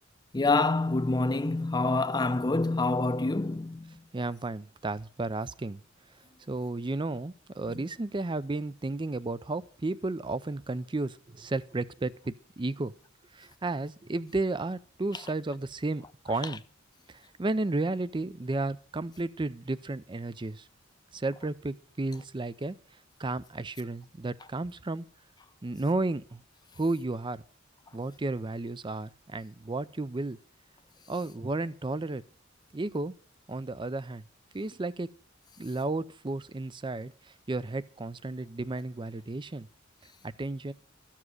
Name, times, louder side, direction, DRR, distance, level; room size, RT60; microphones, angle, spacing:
voice 1, 0.3-3.9 7.7-7.8, left 3 dB, 20° left, 0.6 m, -27 dB
voice 2, 4.1-5.8 6.5-12.9 13.3-16.6 17.1-20.7 21.1-22.8 23.2-25.0 25.6-26.4 26.8-27.4 27.9-30.4 31.1-32.2 32.7-33.1 33.5-34.2 34.5-35.1 35.6-37.1 37.5-39.7 40.4-40.7, right 2 dB, 25° right, 0.5 m, -33 dB
13.5 x 7.4 x 6.3 m
head